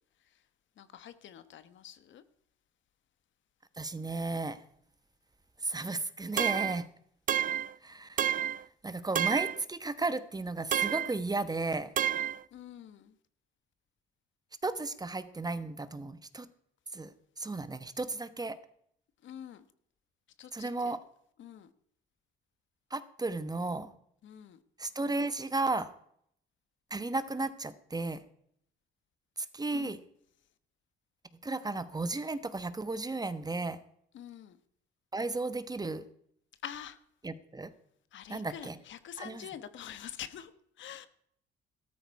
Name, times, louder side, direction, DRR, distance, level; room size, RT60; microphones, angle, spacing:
voice 1, 0.8-2.2 12.5-13.1 19.2-19.6 20.4-21.0 21.4-21.7 24.2-24.6 29.7-29.9 34.1-34.6 36.6-37.0 38.1-40.5 40.8-41.1, left 10 dB, 70° left, 12 dB, 1.2 m, -46 dB
voice 2, 3.8-4.6 5.6-6.9 7.8-11.9 14.6-16.5 16.9-18.6 20.5-21.0 22.9-23.9 24.8-25.9 26.9-28.2 29.4-30.0 31.4-33.8 35.1-36.1 37.2-37.7 38.3-38.8 39.2-39.5, right 3 dB, 20° right, 13 dB, 1.1 m, -34 dB
sound 1, 6.4-6.8 7.3-7.7 8.2-8.6 9.1-9.6 10.7-11.2 12.0-12.4, right 9 dB, 45° right, 0.5 m, -29 dB
13.5 x 13.0 x 4.7 m, 0.68 s
cardioid pair, 90°, 20 cm